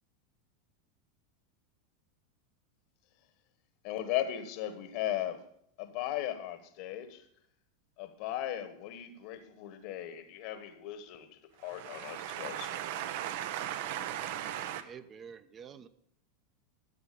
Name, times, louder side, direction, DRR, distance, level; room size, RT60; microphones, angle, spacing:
voice 1, 3.8-5.4 5.8-7.3 8.0-12.8, left 12 dB, 60° left, 1.3 m, -37 dB
voice 2, 11.6-14.8, right 11 dB, 65° right, 1.1 m, -37 dB
voice 3, 14.7-15.9, right 7 dB, 30° right, 1.0 m, -48 dB
13.5 x 7.7 x 6.8 m
hypercardioid pair, 105°, 0 cm